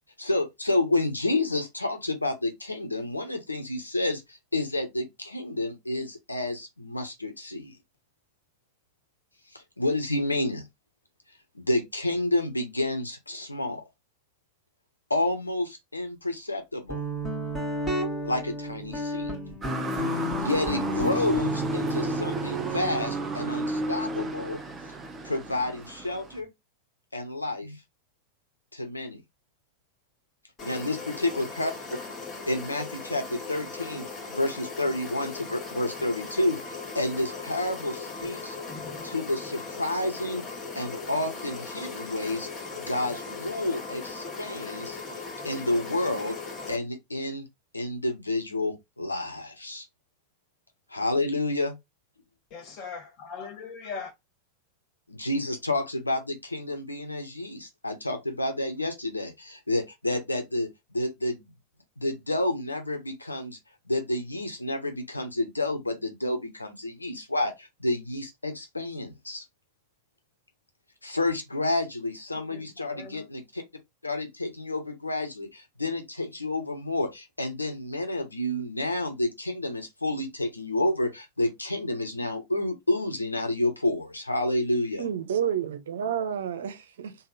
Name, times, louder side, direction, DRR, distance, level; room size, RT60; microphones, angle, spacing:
voice 1, 0.2-7.8 9.5-10.7 11.5-13.8 15.1-17.0 18.2-19.4 20.4-24.6 25.2-26.5 27.1-27.8 28.7-29.2 30.6-31.7 32.5-38.6 39.0-40.4 40.7-42.5 42.8-45.0 45.4-46.4 46.7-47.4 47.7-49.9 50.9-51.7 55.1-61.5 62.0-63.6 63.9-69.4 71.0-73.6 74.0-85.0, left 2 dB, 80° left, 0.9 m, -30 dB
Guitar, 16.9-26.4, equal, 5° left, 1.3 m, -34 dB
Motor vehicle (road) / Siren, 19.6-26.4, right 2 dB, 15° right, 0.6 m, -32 dB
sound 1, 30.6-46.8, left 4 dB, 25° left, 1.3 m, -38 dB
voice 2, 52.5-54.1 72.3-73.2, left 5 dB, 40° left, 1.3 m, -40 dB
voice 3, 85.0-87.2, right 9 dB, 60° right, 0.5 m, -30 dB
3.5 x 2.0 x 3.9 m
figure-of-eight pair, 90°, 0 cm